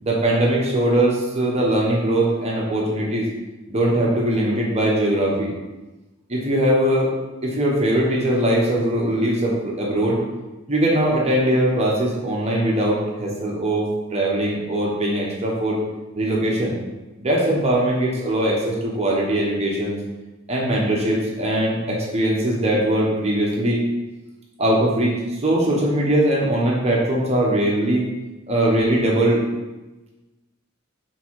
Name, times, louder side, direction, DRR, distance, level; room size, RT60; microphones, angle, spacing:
voice 1, 0.0-3.3 3.7-5.5 6.3-7.1 7.4-10.2 10.7-15.8 16.1-16.7 17.2-20.0 20.5-23.8 24.6-28.0 28.5-29.4, right 1 dB, 35° right, -4 dB, 1.2 m, -21 dB
6.8 x 3.6 x 4.8 m, 1.1 s
head